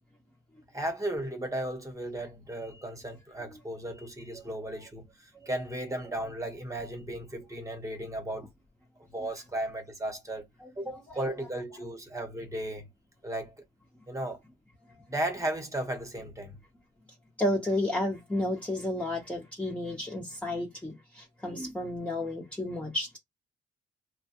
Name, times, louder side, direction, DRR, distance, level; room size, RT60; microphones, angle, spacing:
voice 1, 0.7-8.5 9.1-10.4 10.8-12.9 13.2-13.5 14.1-14.4 15.1-16.6, right 1 dB, 15° right, 1.2 m, -35 dB
voice 2, 17.4-23.2, left 1 dB, 5° left, 0.9 m, -32 dB
2.9 x 2.2 x 2.9 m
cardioid pair, 90°, 20 cm